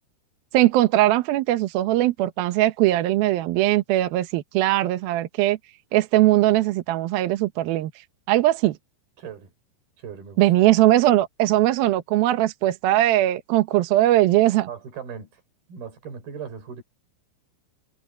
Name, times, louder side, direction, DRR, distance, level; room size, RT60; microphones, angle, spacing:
voice 1, 0.5-5.6 5.9-7.9 8.3-8.8 10.4-14.7, right 15 dB, 75° right, 2.2 m, -20 dB
voice 2, 9.2-9.5 10.0-10.4 14.7-15.4 15.7-16.8, right 7 dB, 50° right, 6.0 m, -38 dB
omnidirectional pair, 5.7 m